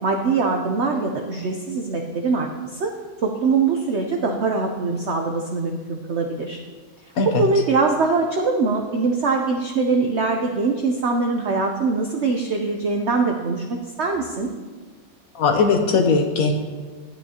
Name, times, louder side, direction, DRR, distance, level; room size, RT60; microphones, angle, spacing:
voice 1, 0.0-2.9 3.2-6.6 7.3-13.6 14.0-14.5, right 4 dB, 75° right, 3 dB, 0.6 m, -22 dB
voice 2, 15.3-16.5, left 4 dB, 60° left, 5 dB, 1.0 m, -19 dB
11.0 x 9.1 x 2.8 m, 1.4 s
omnidirectional pair, 1.9 m